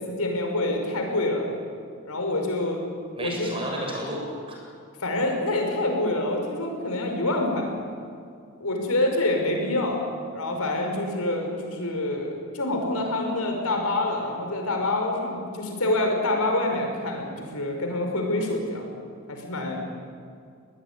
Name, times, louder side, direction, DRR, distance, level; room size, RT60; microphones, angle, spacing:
voice 1, 0.0-1.5 2.0-2.9 3.2-3.5 5.0-7.7 8.6-10.0 10.3-18.9 19.3-19.8, left 2 dB, 90° left, 2 dB, 5.5 m, -26 dB
voice 2, 3.1-4.5, equal, 25° right, -1 dB, 7.4 m, -32 dB
22.5 x 19.5 x 9.7 m, 2.3 s
head